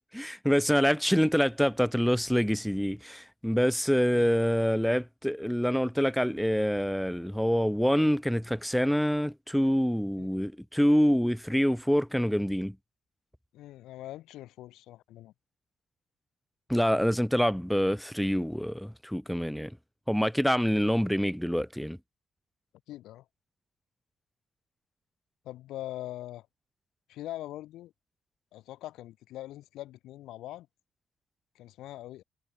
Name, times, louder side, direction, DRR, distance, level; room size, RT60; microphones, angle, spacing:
voice 1, 0.0-12.7 16.7-19.8 20.1-22.0, equal, ahead, 1.5 m, -26 dB
voice 2, 13.5-15.3 22.9-23.3 25.4-26.5 27.1-27.9 28.5-30.7 31.5-32.2, left 15 dB, 85° left, 4.3 m, -42 dB
cardioid pair, 90°, 0 cm